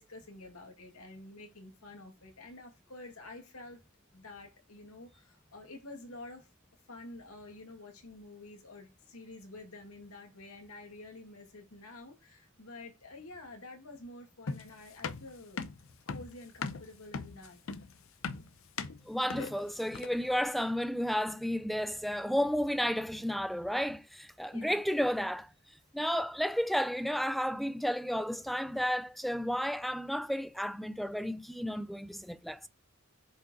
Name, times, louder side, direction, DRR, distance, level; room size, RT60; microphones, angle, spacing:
voice 1, 0.0-3.8 4.1-6.5 6.9-15.6 16.1-17.6 24.5-24.8, left 2 dB, 80° left, 2.4 m, -49 dB
sound 1, 14.5-20.3, left 4 dB, 65° left, 0.6 m, -39 dB
voice 2, 19.1-25.5 25.9-32.7, equal, ahead, 0.3 m, -32 dB
7.7 x 5.2 x 3.9 m
head